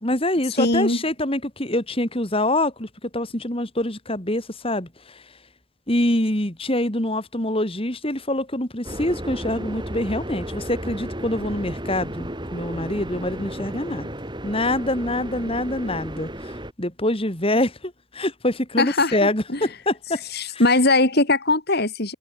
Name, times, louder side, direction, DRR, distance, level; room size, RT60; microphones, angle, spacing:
voice 1, 0.0-5.2 5.9-14.1 14.4-20.2 20.5-20.6, left 1 dB, 25° left, 3.2 m, -25 dB
voice 2, 0.6-1.0 18.8-19.6 20.3-22.1, left 2 dB, 50° left, 3.0 m, -20 dB
sound 1, 8.8-16.7, right 1 dB, 20° right, 3.9 m, -33 dB
head